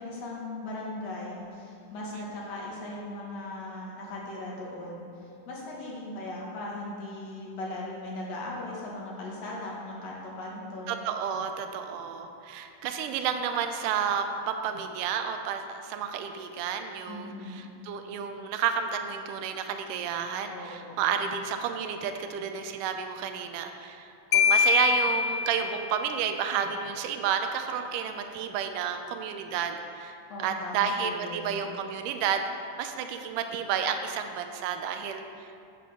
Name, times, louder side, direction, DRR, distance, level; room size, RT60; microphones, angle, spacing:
voice 1, 0.0-5.1 5.5-11.0 17.1-17.7 20.5-21.0 30.3-31.6, left 2 dB, 60° left, -4 dB, 2.7 m, -38 dB
voice 2, 10.9-32.4 32.8-35.7, right 7 dB, 90° right, 6 dB, 2.2 m, -31 dB
Marimba xylophone, 24.3-26.1, left 5 dB, 80° left, 1.6 m, -24 dB
11.0 x 7.7 x 3.7 m, 2.7 s
omnidirectional pair, 3.6 m